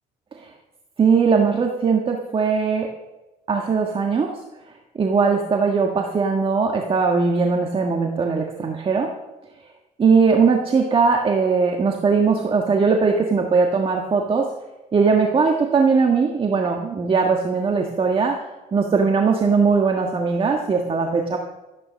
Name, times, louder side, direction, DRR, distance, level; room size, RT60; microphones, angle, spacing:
voice 1, 1.0-2.9 3.5-4.3 4.9-9.1 10.0-14.5 14.9-18.3 18.7-21.4, right 5 dB, 30° right, 2 dB, 1.6 m, -19 dB
14.5 x 9.3 x 6.4 m, 1.1 s
cardioid pair, 110°, 17 cm